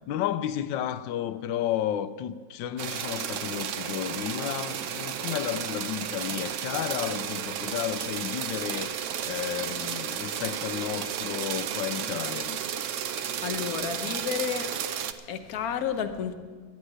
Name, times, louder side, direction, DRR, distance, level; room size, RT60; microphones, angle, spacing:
voice 1, 0.1-12.6, left 11 dB, 90° left, 1.3 m, -32 dB
sound 1, 2.8-15.1, right 9 dB, 70° right, 0.7 m, -33 dB
voice 2, 13.2-14.8 15.2-16.3, left 8 dB, 60° left, 1.2 m, -31 dB
10.5 x 8.9 x 9.8 m
omnidirectional pair, 1.9 m